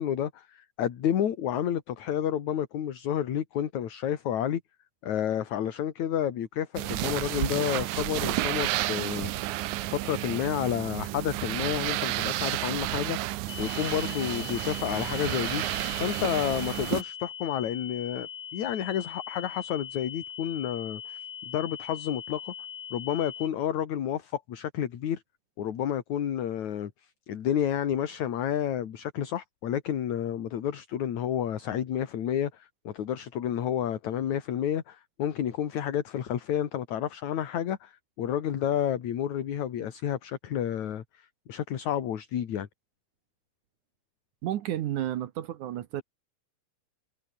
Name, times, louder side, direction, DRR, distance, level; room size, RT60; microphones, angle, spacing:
voice 1, 0.0-4.6 5.0-21.2 21.5-22.5 22.9-25.2 25.6-26.9 27.3-42.7, left 10 dB, 55° left, 2.9 m, -30 dB
sound 1, 6.8-17.0, right 17 dB, 90° right, 1.7 m, -31 dB
sound 2, 13.5-23.5, left 9 dB, 75° left, 4.3 m, -41 dB
voice 2, 44.4-46.0, right 12 dB, 65° right, 2.2 m, -31 dB
omnidirectional pair, 4.4 m